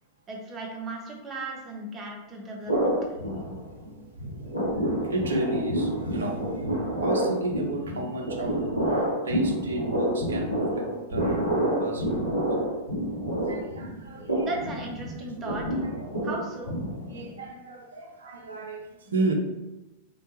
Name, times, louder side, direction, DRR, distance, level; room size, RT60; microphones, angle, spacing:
voice 1, 0.3-3.0 13.9-15.9 16.2-16.7, right 2 dB, 25° right, 0 dB, 0.6 m, -37 dB
sound 1, 2.7-3.9 4.2-17.3, right 1 dB, 85° left, 0.6 m, -28 dB
voice 2, 5.0-6.7 7.0-8.7 9.2-12.4 13.5-14.5 17.1-19.3, right 2 dB, 70° right, 2 dB, 0.5 m, -32 dB
3.1 x 2.1 x 2.7 m, 0.98 s
figure-of-eight pair, 90°, 0 cm